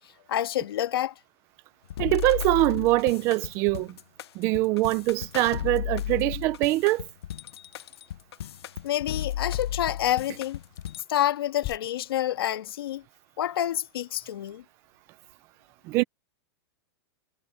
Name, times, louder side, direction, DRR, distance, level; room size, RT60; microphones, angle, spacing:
voice 1, 0.3-1.1 8.8-10.6 11.1-13.0 13.4-14.6, left 12 dB, 65° left, 1.7 m, -28 dB
sound 1, 1.9-11.0, left 11 dB, 80° left, 0.7 m, -34 dB
voice 2, 2.0-3.9 4.3-7.1 15.8-16.0, right 19 dB, 20° right, 0.4 m, -23 dB
sound 2, 4.8-5.3 9.4-9.8 10.5-10.9 11.5-11.8, left 19 dB, 25° left, 3.9 m, -43 dB
supercardioid pair, 175°, 13 cm